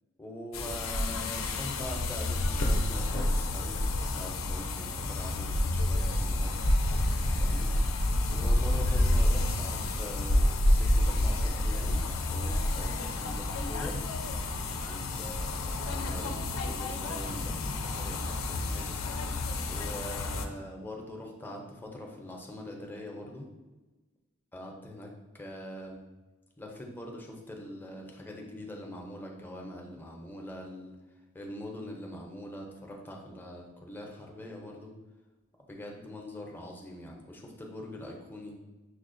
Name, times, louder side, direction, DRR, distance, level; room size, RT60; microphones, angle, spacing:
voice 1, 0.2-3.8 4.1-6.6 7.4-7.7 8.3-10.5 10.7-14.0 14.9-18.9 19.7-23.5 24.5-26.0 26.6-31.0 31.3-34.9 35.7-38.6, left 1 dB, 10° left, 0 dB, 0.5 m, -43 dB
sound 1, 0.5-20.5, left 1 dB, 70° left, 0.4 m, -29 dB
6.2 x 2.1 x 2.5 m, 1.2 s
head